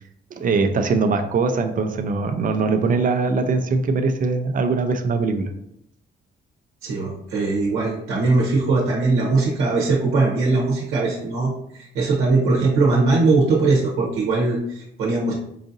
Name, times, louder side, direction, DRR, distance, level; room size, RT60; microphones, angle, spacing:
voice 1, 0.3-5.5, right 4 dB, 45° right, 7 dB, 0.5 m, -21 dB
voice 2, 6.8-15.3, right 3 dB, 90° right, -3 dB, 0.8 m, -20 dB
4.8 x 2.6 x 2.7 m, 0.76 s
cardioid pair, 90°, 20 cm